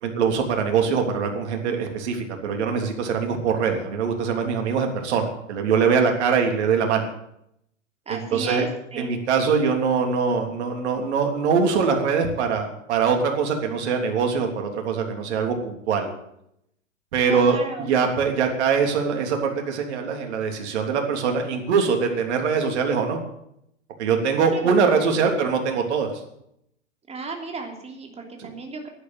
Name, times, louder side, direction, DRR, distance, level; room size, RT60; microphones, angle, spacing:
voice 1, 0.0-7.0 8.1-8.6 9.0-16.1 17.1-23.2 24.0-26.1 28.4-28.5, right 5 dB, 60° right, 3 dB, 3.3 m, -23 dB
voice 2, 8.0-9.1 17.2-17.9 24.5-25.4 27.1-28.9, right 4 dB, 15° right, 2 dB, 3.2 m, -34 dB
11.5 x 10.5 x 8.9 m, 0.77 s
hypercardioid pair, 105°, 38 cm